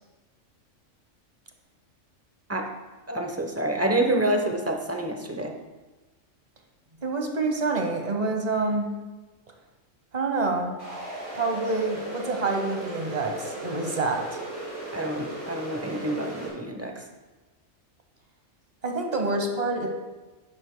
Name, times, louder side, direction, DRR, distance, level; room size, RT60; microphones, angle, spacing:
voice 1, 3.1-5.5 14.9-17.0, right 1 dB, 15° right, 3 dB, 0.7 m, -27 dB
voice 2, 7.0-9.0 10.1-10.7 11.3-14.4 18.8-19.9, right 3 dB, 35° right, 3 dB, 1.1 m, -27 dB
sound 1, 10.8-16.5, right 2 dB, 85° right, 3.5 m, -36 dB
11.5 x 9.8 x 2.2 m, 1.2 s
omnidirectional pair, 1.3 m